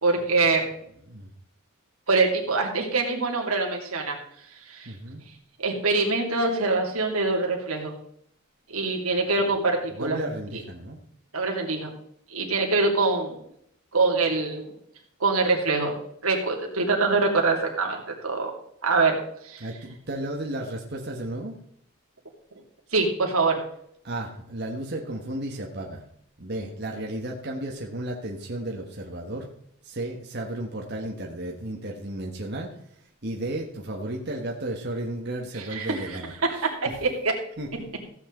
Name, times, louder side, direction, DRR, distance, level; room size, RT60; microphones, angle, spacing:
voice 1, 0.0-0.6 2.1-4.2 4.7-4.9 5.6-8.0 8.7-10.2 11.3-11.9 12.3-13.4 13.9-14.7 15.2-16.0 16.2-18.5 18.8-19.2 19.4-19.7 22.9-23.6 35.6-36.7 37.0-37.3, right 3 dB, 85° right, 1 dB, 2.8 m, -24 dB
voice 2, 4.8-5.2 9.9-11.0 19.6-21.5 24.0-26.0 26.4-29.5 29.8-32.7 33.2-36.7 37.6-37.9, right 1 dB, 50° right, 0 dB, 1.6 m, -33 dB
15.5 x 8.4 x 3.9 m, 0.69 s
head